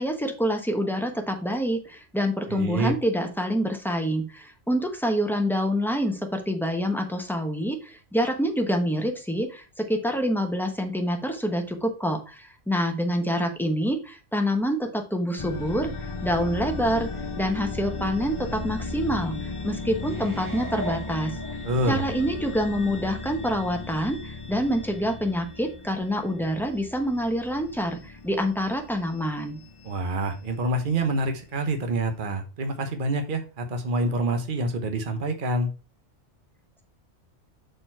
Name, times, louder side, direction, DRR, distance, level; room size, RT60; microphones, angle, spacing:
voice 1, 0.0-15.9 16.2-17.1 17.3-19.4 19.6-21.4 21.9-29.6, equal, ahead, 3 dB, 1.0 m, -26 dB
voice 2, 2.5-2.9 21.6-22.0 29.8-35.7, right 2 dB, 50° right, 6 dB, 1.1 m, -27 dB
sound 1, 15.4-31.4, left 3 dB, 35° left, 0.5 m, -36 dB
sound 2, 20.0-22.1 22.6-22.7, equal, 30° right, 0.4 m, -39 dB
6.5 x 4.4 x 4.4 m, 0.34 s
omnidirectional pair, 1.2 m